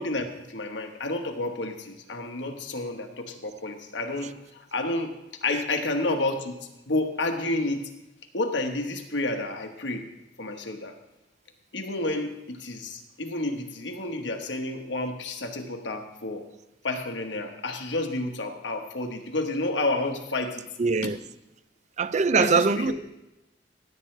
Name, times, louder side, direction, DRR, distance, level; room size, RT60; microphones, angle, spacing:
voice 1, 0.0-5.1 5.4-6.6 6.9-7.9 8.3-10.1 10.4-11.0 11.7-16.5 16.8-20.6 21.0-21.1 22.4-22.9, left 2 dB, 65° left, 1.3 m, -30 dB
voice 2, 20.8-21.2 22.0-22.9, right 4 dB, 40° right, 0.5 m, -22 dB
16.5 x 9.0 x 3.3 m
head